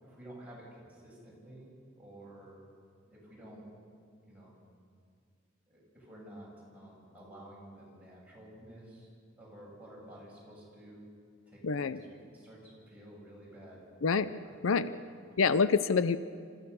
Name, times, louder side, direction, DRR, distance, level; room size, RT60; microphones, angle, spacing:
voice 1, 0.0-2.6 3.1-3.7 4.2-4.6 5.7-9.1 9.4-11.0 11.5-12.0 12.2-13.8 14.4-14.7 15.1-15.2, right 1 dB, 5° right, -6 dB, 7.4 m, -51 dB
voice 2, 11.6-12.0 14.0-14.3 14.6-14.9 15.4-16.2, left 5 dB, 75° left, 14 dB, 0.6 m, -26 dB
27.5 x 15.0 x 7.0 m, 2.2 s
head